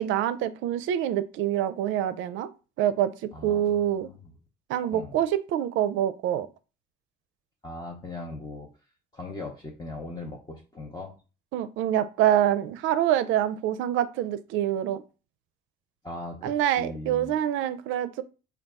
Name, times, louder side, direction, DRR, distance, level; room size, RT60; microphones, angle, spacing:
voice 1, 0.0-2.5 2.8-4.1 4.7-6.5 11.5-15.0 16.4-18.2, right 11 dB, 75° right, 0.4 m, -26 dB
voice 2, 3.3-4.2 4.9-5.2 7.6-8.7 9.1-11.1 16.0-17.3, left 2 dB, 20° left, 0.6 m, -39 dB
4.0 x 2.3 x 3.5 m
cardioid pair, 125°, 20 cm